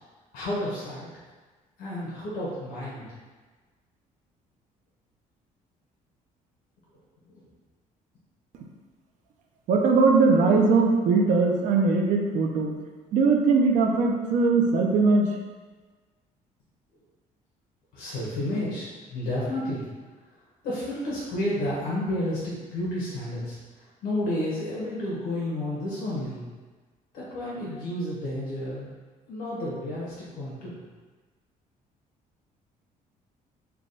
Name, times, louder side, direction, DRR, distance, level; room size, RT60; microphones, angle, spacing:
voice 1, 0.3-1.1 1.8-3.1 7.3-7.4 17.9-19.9 20.6-26.4 27.1-28.9 29.3-30.8, left 1 dB, 75° left, -7 dB, 0.9 m, -31 dB
voice 2, 9.7-12.7 13.1-15.3, right 4 dB, 60° right, 1 dB, 0.5 m, -20 dB
3.4 x 2.2 x 3.9 m, 1.3 s
cardioid pair, 170°, 14 cm